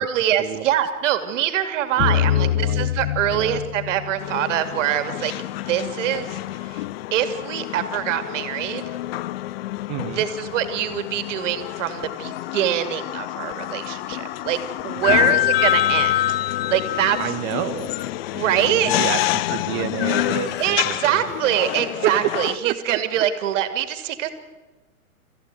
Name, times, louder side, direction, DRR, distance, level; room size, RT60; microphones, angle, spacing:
voice 1, 0.0-5.3 5.7-6.8 7.1-8.8 10.1-16.4 16.7-17.2 18.3-18.9 20.6-24.3, right 11 dB, 55° right, 9 dB, 2.8 m, -24 dB
sound 1, 2.0-5.1, left 13 dB, 65° left, 0.9 m, -24 dB
voice 2, 2.0-2.9 3.3-3.6 9.9-10.2 15.0-15.3 17.2-17.9 18.9-21.9 22.4-23.2, right 13 dB, 25° right, 6 dB, 0.8 m, -30 dB
sound 2, 4.2-22.6, left 14 dB, 45° left, 0.7 m, -27 dB
sound 3, 10.7-10.8 11.9-20.8, left 9 dB, 25° left, 1.2 m, -38 dB
26.5 x 14.5 x 9.4 m, 1.2 s
hypercardioid pair, 130°, 43 cm